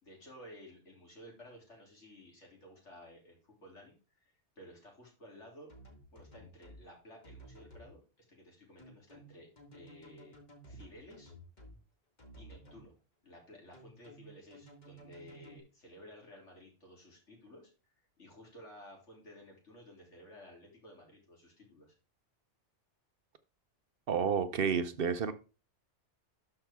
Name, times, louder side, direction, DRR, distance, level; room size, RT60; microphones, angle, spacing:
voice 1, 0.0-5.7 6.1-8.0 8.3-10.4 10.7-11.3 12.4-13.0 13.2-21.9, left 1 dB, 75° left, 3.5 m, -55 dB
sound 1, 5.7-6.8 7.2-7.9 8.8-11.8 12.2-12.8 13.7-15.6, right 1 dB, 40° left, 1.9 m, -54 dB
voice 2, 24.1-25.3, right 6 dB, 55° right, 0.9 m, -30 dB
12.0 x 5.8 x 3.6 m
omnidirectional pair, 1.2 m